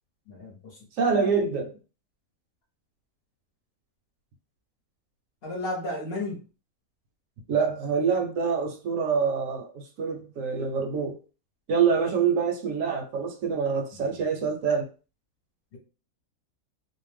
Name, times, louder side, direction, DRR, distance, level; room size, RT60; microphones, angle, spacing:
voice 1, 0.3-0.9 5.4-6.4 14.0-14.2 15.7-15.8, left 2 dB, 50° left, 0.9 m, -34 dB
voice 2, 1.0-1.7 7.5-11.2 11.7-14.9, right 6 dB, 70° right, 1.0 m, -26 dB
2.6 x 2.1 x 3.2 m
omnidirectional pair, 1.5 m